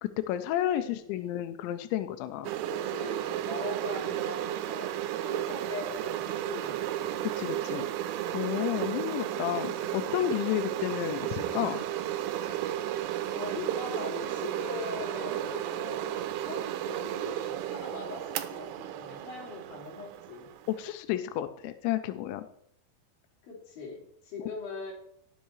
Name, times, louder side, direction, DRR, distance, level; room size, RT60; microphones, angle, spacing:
voice 1, 0.0-2.5 7.2-7.9 8.3-11.8 20.7-22.5 24.4-24.5, left 13 dB, 85° left, 9 dB, 2.6 m, -31 dB
voice 2, 0.8-1.4 2.7-7.2 8.8-9.4 10.8-11.1 13.3-20.5 23.4-24.9, left 4 dB, 50° left, -2 dB, 4.3 m, -42 dB
sound 1, 2.4-20.9, right 12 dB, 80° right, 3.0 m, -33 dB
18.5 x 6.5 x 3.1 m, 0.69 s
omnidirectional pair, 5.8 m